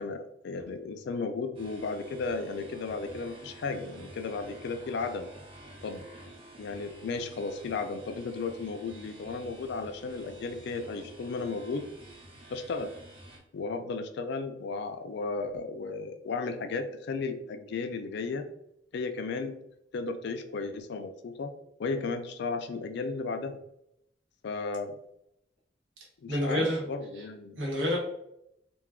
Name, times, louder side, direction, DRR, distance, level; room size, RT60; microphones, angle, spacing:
voice 1, 0.0-5.3 5.8-6.1 6.6-11.9 12.5-12.9 13.5-18.4 18.9-19.6 19.9-21.5 21.8-23.6 24.4-25.0 26.2-27.6, left 4 dB, 65° left, 7 dB, 0.4 m, -34 dB
sound 1, 1.5-13.4, right 1 dB, 30° right, 0.6 m, -50 dB
voice 2, 26.3-26.8 27.2-27.3 27.6-28.0, equal, 75° right, -1 dB, 0.9 m, -28 dB
2.2 x 2.2 x 3.5 m, 0.79 s
head